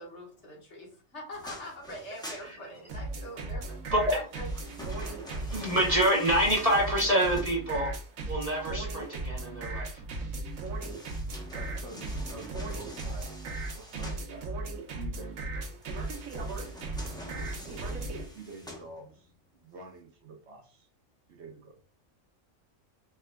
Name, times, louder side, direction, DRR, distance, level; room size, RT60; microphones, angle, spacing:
voice 1, 0.0-3.8 4.1-4.5, equal, 60° left, -2 dB, 1.7 m, -43 dB
sound 1, 1.3-3.2 4.1-8.0 10.5-14.3 15.8-19.3 19.8-19.9, left 1 dB, 5° left, 0.6 m, -46 dB
sound 2, 2.9-18.3, right 2 dB, 85° right, 1.2 m, -36 dB
voice 2, 3.9-4.2 4.9-7.9 8.3-10.0, right 1 dB, 35° right, -3 dB, 0.8 m, -27 dB
voice 3, 11.5-13.3 13.7-14.4 14.9-15.8 17.2-20.9 21.3-21.8, right 2 dB, 60° right, 3 dB, 1.0 m, -48 dB
4.6 x 3.5 x 2.2 m, 0.40 s
omnidirectional pair, 1.4 m